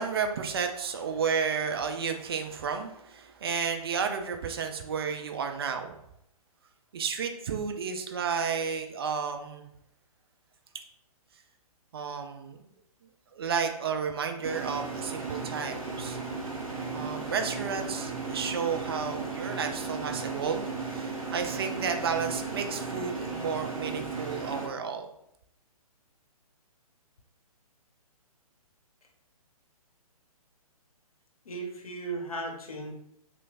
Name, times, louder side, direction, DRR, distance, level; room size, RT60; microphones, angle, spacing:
voice 1, 0.0-5.9 6.9-9.7 11.9-12.6 13.3-16.2 16.9-25.1, right 6 dB, 40° right, 5 dB, 0.4 m, -32 dB
sound 1, 14.4-24.7, right 4 dB, 60° right, 0.9 m, -35 dB
voice 2, 31.4-32.9, right 2 dB, 70° left, 1 dB, 0.9 m, -36 dB
3.1 x 3.1 x 2.5 m, 0.75 s
figure-of-eight pair, 130°, 19 cm